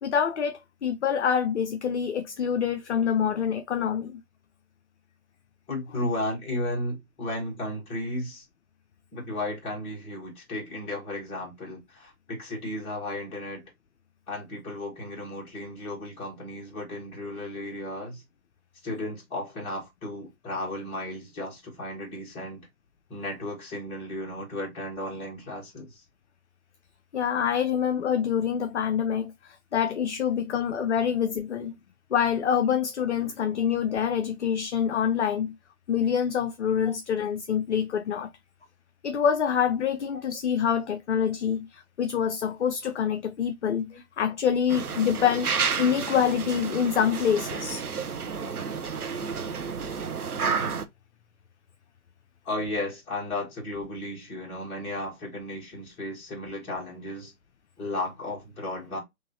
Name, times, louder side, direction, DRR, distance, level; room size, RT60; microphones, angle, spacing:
voice 1, 0.0-4.2 27.1-31.7 32.1-35.5 35.9-38.3 39.0-45.5 45.8-47.8, left 8 dB, 55° left, 0.5 m, -26 dB
voice 2, 5.7-8.4 9.1-13.6 14.3-18.2 18.8-22.7 23.1-26.0 30.5-30.6 32.7-32.8 36.8-37.0 40.3-40.4 43.9-44.0 52.4-57.3 57.8-59.0, left 1 dB, 10° left, 1.5 m, -34 dB
sound 1, 44.7-50.8, right 5 dB, 85° right, 0.8 m, -31 dB
3.7 x 3.0 x 2.6 m
figure-of-eight pair, 140°, 44 cm